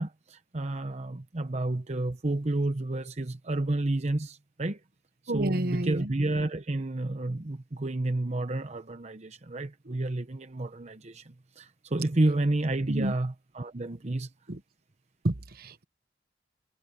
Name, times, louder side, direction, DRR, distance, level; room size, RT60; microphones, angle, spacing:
voice 1, 0.0-4.8 5.3-14.3, right 2 dB, 40° right, 0.8 m, -30 dB
voice 2, 5.3-6.1 12.9-13.1 14.5-14.6 15.2-15.8, right 1 dB, 55° right, 1.1 m, -30 dB
head